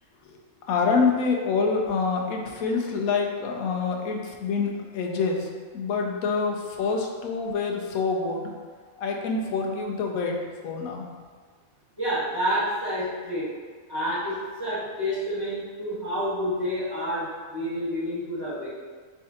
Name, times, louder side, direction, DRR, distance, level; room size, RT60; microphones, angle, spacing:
voice 1, 0.7-8.5 9.0-10.4 10.6-11.0, left 4 dB, 90° left, 1 dB, 1.1 m, -26 dB
voice 2, 12.0-13.6 13.9-18.7, equal, 15° right, -11 dB, 1.4 m, -29 dB
4.6 x 3.3 x 2.8 m, 1.5 s
omnidirectional pair, 1.4 m